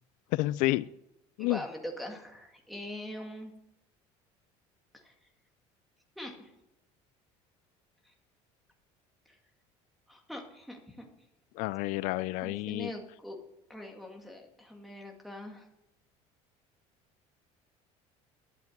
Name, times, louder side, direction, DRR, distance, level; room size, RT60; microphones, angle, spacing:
voice 1, 0.3-0.8 1.4-1.6 11.6-12.9, left 19 dB, 75° left, 18 dB, 0.4 m, -29 dB
voice 2, 1.4-3.5 5.0-5.1 6.2-6.5 10.1-11.1 12.4-13.4 13.7-15.7, left 1 dB, ahead, 2 dB, 2.1 m, -42 dB
12.0 x 8.3 x 7.8 m, 0.88 s
cardioid pair, 145°, 14 cm